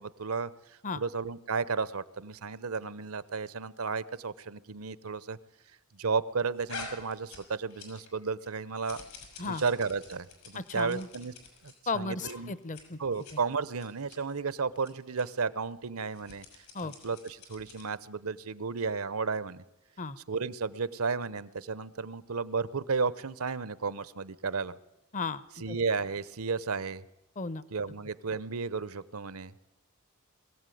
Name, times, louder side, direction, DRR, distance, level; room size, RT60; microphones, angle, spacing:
voice 1, 0.0-5.4 5.9-9.0 9.4-11.3 11.6-12.5 13.0-16.4 16.8-19.6 20.3-24.8 25.6-27.0 27.7-29.5, right 4 dB, 75° right, 17 dB, 0.9 m, -33 dB
sound 1, 6.7-8.2 8.4-11.7 12.2-12.4 12.6-12.8 13.1-13.4 13.8-14.2 14.8-14.9 15.2-15.3 16.1-17.9, left 4 dB, 85° left, 6.4 m, -47 dB
voice 2, 10.5-11.1 11.9-13.0 13.3-13.4 16.7-16.9 20.0-20.2 25.1-25.8 27.4-27.6, left 4 dB, 35° left, 17 dB, 0.7 m, -35 dB
22.5 x 15.0 x 9.3 m, 0.95 s
head